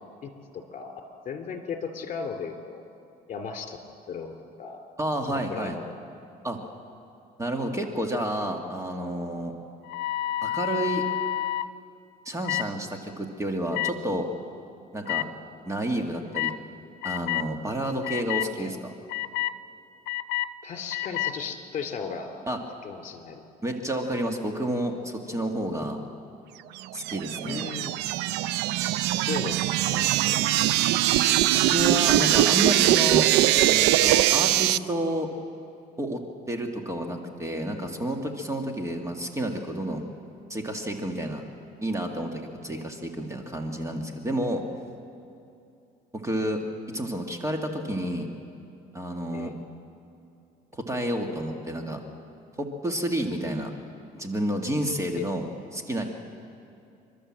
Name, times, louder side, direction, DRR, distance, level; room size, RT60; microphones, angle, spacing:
voice 1, 0.2-2.8 3.3-3.8 4.1-4.3 4.6-4.8 5.3-6.0 18.6-18.8 20.6-22.3 22.8-23.7 27.4-28.0 29.2-29.6 29.9-30.4 42.7-42.8 49.3-49.6 55.2-55.3, left 6 dB, 50° left, 4 dB, 2.9 m, -36 dB
voice 2, 5.0-5.8 6.4-6.6 7.4-9.5 10.4-11.0 12.3-14.3 14.9-15.3 15.7-16.5 17.0-18.9 22.5-22.6 23.6-26.0 26.9-27.6 31.5-33.3 33.7-35.3 36.0-36.2 36.5-40.0 40.5-41.4 41.8-44.6 46.1-46.6 46.9-48.3 48.9-49.5 50.7-52.0 52.6-53.7 54.1-56.1, right 1 dB, 15° right, 3 dB, 1.9 m, -30 dB
sound 1, 9.9-11.7 12.4-12.7 13.7-13.9 15.1-15.2 16.3-16.6 17.0-17.5 18.0-18.5 19.1-19.5 20.1-20.5 20.9-21.3, left 14 dB, 80° left, 0.7 m, -29 dB
sound 2, 26.8-34.8, right 15 dB, 85° right, 0.4 m, -22 dB
28.5 x 12.5 x 7.6 m, 2.7 s
cardioid pair, 110°, 17 cm